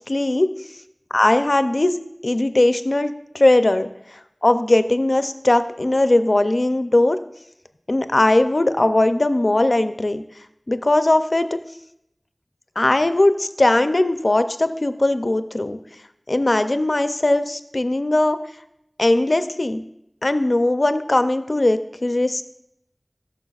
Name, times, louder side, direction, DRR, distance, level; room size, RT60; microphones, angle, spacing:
voice 1, 0.1-0.5 1.1-2.0 2.2-3.9 4.4-7.2 7.9-10.2 10.7-11.6 12.8-15.8 16.3-18.4 19.0-19.8 20.2-22.4, left 2 dB, 75° left, 10 dB, 0.4 m, -19 dB
13.5 x 6.4 x 2.4 m, 0.80 s
wide cardioid pair, 40°, 0 cm